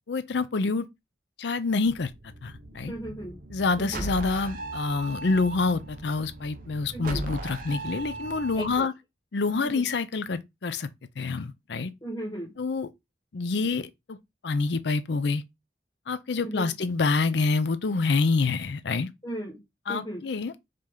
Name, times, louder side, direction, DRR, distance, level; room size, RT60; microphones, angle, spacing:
voice 1, 0.1-0.9 1.4-2.1 2.4-2.9 3.5-8.9 9.3-10.9 11.2-11.9 12.6-12.9 13.3-14.2 14.4-15.4 16.1-19.1 19.9-20.5, left 4 dB, 65° left, 0.5 m, -27 dB
sound 1, 1.8-8.8, right 2 dB, 45° right, 0.7 m, -38 dB
voice 2, 2.9-3.4 3.8-4.0 6.9-7.2 8.6-8.9 9.5-9.9 12.0-12.5 16.4-16.7 19.2-19.6 19.9-20.3, right 1 dB, 25° left, 1.4 m, -36 dB
5.1 x 2.8 x 3.6 m
head